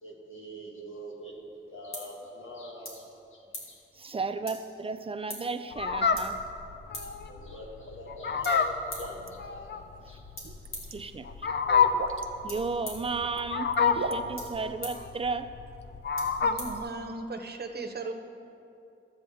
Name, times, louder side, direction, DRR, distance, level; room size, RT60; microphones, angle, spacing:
voice 1, 0.0-3.0 3.3-4.1 7.3-10.2, equal, 75° left, -2 dB, 1.8 m, -44 dB
sound 1, 1.2-17.4, left 1 dB, 90° left, 2.1 m, -48 dB
voice 2, 4.0-6.4 10.9-11.5 12.4-15.5, right 4 dB, 30° right, 9 dB, 0.4 m, -34 dB
Fowl, 5.7-16.8, left 6 dB, 60° left, 0.5 m, -28 dB
sound 2, 9.0-9.3 10.4-10.9 11.9-12.3 13.1-13.4 13.7-14.2, right 4 dB, 90° right, 0.6 m, -35 dB
voice 3, 16.4-18.1, right 3 dB, 50° right, 5 dB, 0.8 m, -37 dB
14.0 x 7.9 x 3.5 m, 2.6 s
wide cardioid pair, 160°, 21 cm